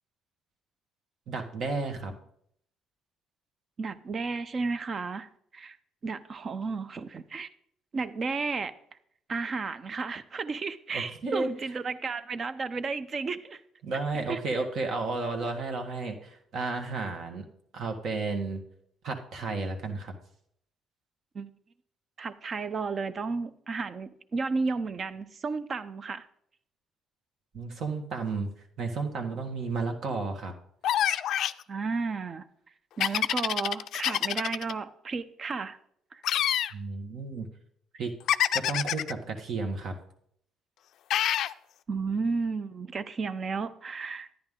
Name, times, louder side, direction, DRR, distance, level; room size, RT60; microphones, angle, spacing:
voice 1, 1.3-2.1 10.9-11.5 13.8-17.5 17.7-18.6 19.0-20.1 27.5-28.5 28.8-30.5 36.7-37.5 37.9-38.1 38.5-40.0, right 3 dB, 60° right, 4 dB, 1.5 m, -32 dB
voice 2, 3.8-5.8 6.0-7.5 7.9-8.7 9.3-13.6 14.3-14.4 21.3-21.5 22.2-26.3 31.7-32.4 33.0-35.8 36.1-36.2 41.9-44.3, right 4 dB, 45° right, 14 dB, 0.7 m, -33 dB
sound 1, 30.8-31.6 33.0-34.7 36.2-36.7 38.3-39.1 41.1-41.5, left 11 dB, 70° left, 0.3 m, -26 dB
10.5 x 9.7 x 3.7 m, 0.69 s
supercardioid pair, 70°, 0 cm